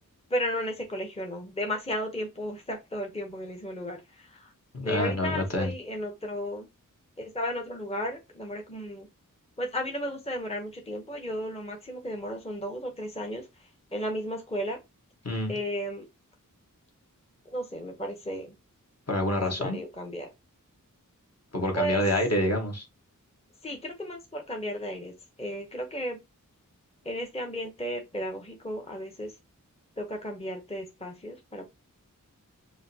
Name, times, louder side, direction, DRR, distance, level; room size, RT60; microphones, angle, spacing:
voice 1, 0.3-4.5 4.8-6.7 7.2-9.1 9.6-14.8 15.5-16.1 17.5-18.6 19.6-20.3 21.7-22.0 23.6-25.1 25.4-26.2 27.0-29.4 30.0-31.7, equal, 20° left, 0.9 m, -34 dB
voice 2, 4.7-5.7 15.2-15.6 19.1-19.8 21.5-22.8, left 1 dB, 50° left, 1.4 m, -27 dB
4.9 x 2.6 x 2.8 m
wide cardioid pair, 65°, 33 cm